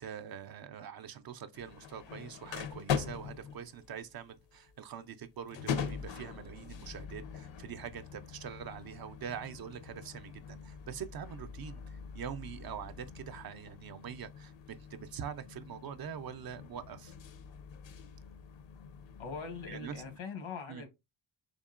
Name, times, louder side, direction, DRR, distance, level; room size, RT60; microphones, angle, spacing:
voice 1, 0.0-17.1 19.7-20.0 20.7-20.8, right 8 dB, 50° right, 0.5 m, -44 dB
sound 1, 1.5-20.2, left 7 dB, 70° left, 0.7 m, -43 dB
voice 2, 19.2-20.9, left 5 dB, 90° left, 1.2 m, -42 dB
3.6 x 3.5 x 2.4 m
cardioid pair, 105°, 47 cm